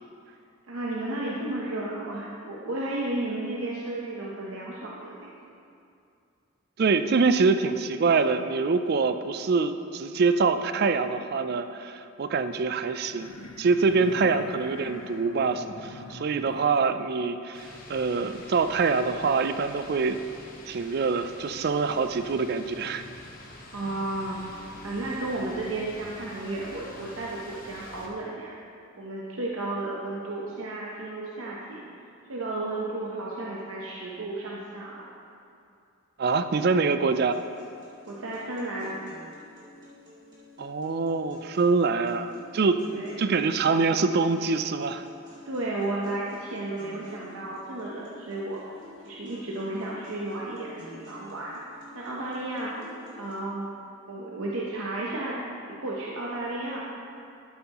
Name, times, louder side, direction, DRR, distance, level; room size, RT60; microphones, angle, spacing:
voice 1, 0.7-5.3 23.7-24.6 24.8-28.5 29.0-31.8 32.3-34.9 38.1-39.0 42.9-43.2 45.5-48.6 49.0-51.6 51.9-52.7 53.2-53.7 54.1-55.4 55.7-56.8, right 2 dB, 70° right, -4 dB, 0.9 m, -33 dB
voice 2, 6.8-13.3 13.6-20.2 20.6-23.0 36.2-37.4 40.6-42.9 43.2-45.0, right 4 dB, 45° right, 10 dB, 0.3 m, -25 dB
sound 1, 12.5-16.9, left 2 dB, 75° left, 0.7 m, -44 dB
sound 2, 17.5-28.1, left 1 dB, 40° left, 1.0 m, -46 dB
sound 3, 37.3-53.3, left 1 dB, 20° right, 2.0 m, -50 dB
12.5 x 7.2 x 3.0 m, 2.5 s
head